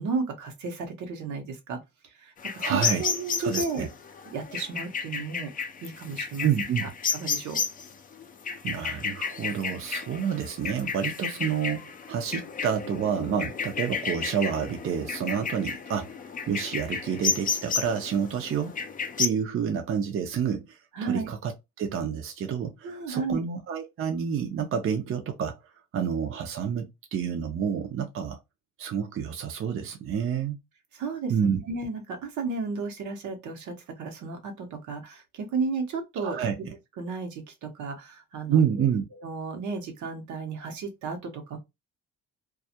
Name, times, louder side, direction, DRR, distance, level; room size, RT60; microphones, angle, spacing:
voice 1, 0.0-3.9 4.3-5.5 5.8-6.5 6.8-7.6 20.9-21.3 22.8-23.5 30.9-36.7 37.0-38.9 39.2-41.6, right 4 dB, 75° right, 0.8 m, -33 dB
sound 1, 2.4-19.3, left 6 dB, 30° left, 0.4 m, -32 dB
voice 2, 2.6-3.0 3.4-3.9 6.4-6.9 8.6-16.2 16.5-18.8 19.2-21.5 21.8-25.6 25.9-28.4 28.8-30.6 31.3-31.6 36.2-36.6 38.5-39.0, right 7 dB, 45° right, 0.5 m, -29 dB
2.3 x 2.0 x 2.7 m
cardioid pair, 90°, 30 cm